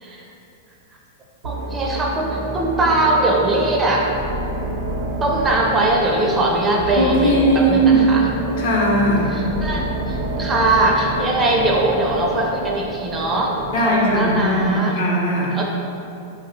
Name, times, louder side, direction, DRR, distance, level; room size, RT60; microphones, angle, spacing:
voice 1, 1.4-4.1 5.2-8.3 9.3-13.6 13.8-15.0 15.5-15.6, right 2 dB, 20° right, -1 dB, 0.4 m, -21 dB
sound 1, 1.4-14.8, right 2 dB, 70° right, 0.5 m, -28 dB
voice 2, 7.0-8.0 8.6-9.4 13.7-15.6, right 1 dB, 60° left, -3 dB, 0.6 m, -18 dB
2.5 x 2.0 x 3.9 m, 2.8 s
hypercardioid pair, 105°, 0 cm